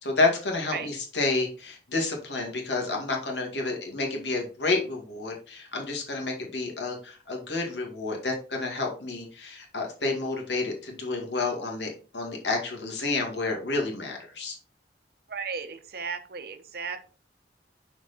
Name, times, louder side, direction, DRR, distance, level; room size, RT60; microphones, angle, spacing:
voice 1, 0.0-14.6, left 3 dB, 90° left, 1 dB, 2.2 m, -30 dB
voice 2, 15.3-17.1, right 5 dB, 60° right, 9 dB, 0.9 m, -35 dB
6.1 x 4.6 x 4.3 m, 0.38 s
head